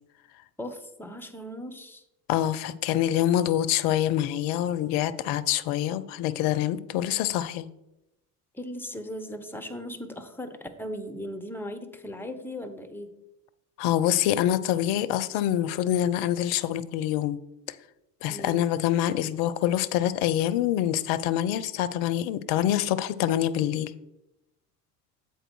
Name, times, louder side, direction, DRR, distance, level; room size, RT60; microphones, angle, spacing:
voice 1, 0.6-2.0 8.5-13.2 18.3-18.7, left 1 dB, 5° left, 0.9 m, -38 dB
voice 2, 2.3-7.7 13.8-17.4 18.2-23.9, left 12 dB, 60° left, 0.6 m, -25 dB
7.8 x 4.6 x 4.6 m
hypercardioid pair, 65°, 47 cm